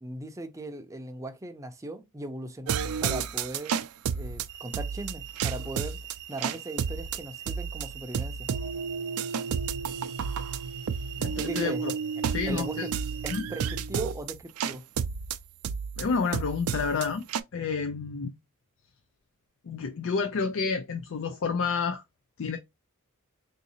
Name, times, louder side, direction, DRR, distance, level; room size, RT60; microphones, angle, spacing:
voice 1, 0.0-3.8 4.1-6.0 6.3-8.5 11.4-11.8 12.5-12.9 13.2-14.8, right 2 dB, 15° right, 0.5 m, -38 dB
sound 1, 2.7-17.4, right 6 dB, 80° right, 0.4 m, -31 dB
sound 2, 4.5-13.4, right 11 dB, 60° right, 0.8 m, -44 dB
voice 2, 11.2-11.9 12.3-12.9 13.3-13.4 16.0-17.2 17.5-18.3 19.7-22.0 22.4-22.6, left 5 dB, 60° left, 0.4 m, -29 dB
3.8 x 2.7 x 2.7 m
head